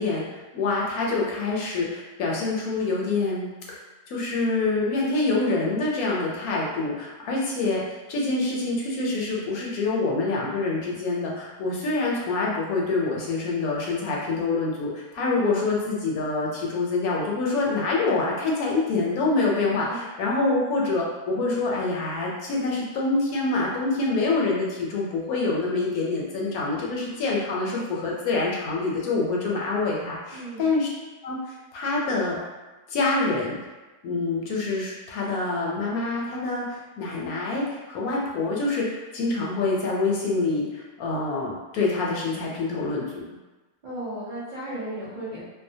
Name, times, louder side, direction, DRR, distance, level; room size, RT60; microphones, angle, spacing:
voice 1, 0.0-3.5 4.1-7.8 8.1-30.9 31.2-32.4 32.9-33.6 34.0-43.2, left 3 dB, 75° left, -3 dB, 1.0 m, -26 dB
voice 2, 30.3-30.7 43.8-45.4, right 1 dB, 55° right, -12 dB, 0.4 m, -35 dB
2.7 x 2.1 x 2.6 m, 1.2 s
omnidirectional pair, 1.7 m